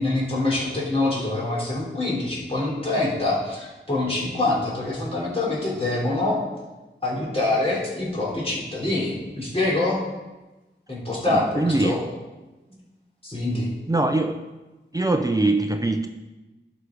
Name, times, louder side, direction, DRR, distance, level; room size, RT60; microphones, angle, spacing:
voice 1, 0.0-6.4 7.0-10.0 10.9-12.0 13.2-13.7, left 2 dB, 30° left, -6 dB, 3.6 m, -25 dB
voice 2, 11.3-12.0 13.9-14.4 14.9-16.1, right 2 dB, 20° right, 5 dB, 0.6 m, -22 dB
12.0 x 5.0 x 4.7 m, 1.1 s
wide cardioid pair, 60°, 20 cm